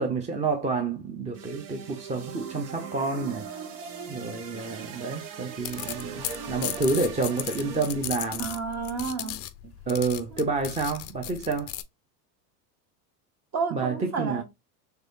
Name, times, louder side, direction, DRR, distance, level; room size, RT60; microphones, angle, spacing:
voice 1, 0.0-3.7 4.1-8.4 9.9-11.7 13.7-14.4, right 3 dB, 15° right, 0.6 m, -29 dB
sound 1, 1.3-8.4, right 6 dB, 75° right, 1.0 m, -40 dB
sound 2, 5.6-11.8, left 13 dB, 35° left, 0.4 m, -36 dB
voice 2, 8.4-9.4 13.5-14.4, right 5 dB, 35° right, 1.1 m, -30 dB
3.4 x 3.3 x 2.6 m
hypercardioid pair, 100°, 47 cm